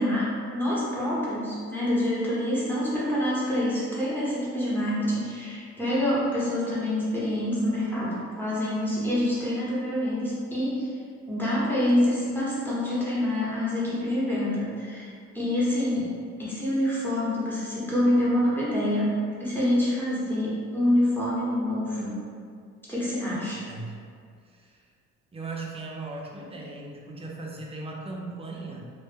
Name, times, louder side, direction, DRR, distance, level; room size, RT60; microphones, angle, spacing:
voice 1, 0.0-10.9 11.3-16.1 16.4-22.2 22.9-23.6, left 1 dB, 5° left, -9 dB, 0.8 m, -26 dB
voice 2, 24.5-24.8 25.3-28.8, right 3 dB, 20° right, -2 dB, 0.4 m, -38 dB
2.1 x 2.1 x 3.2 m, 2.1 s
cardioid pair, 90°, 30 cm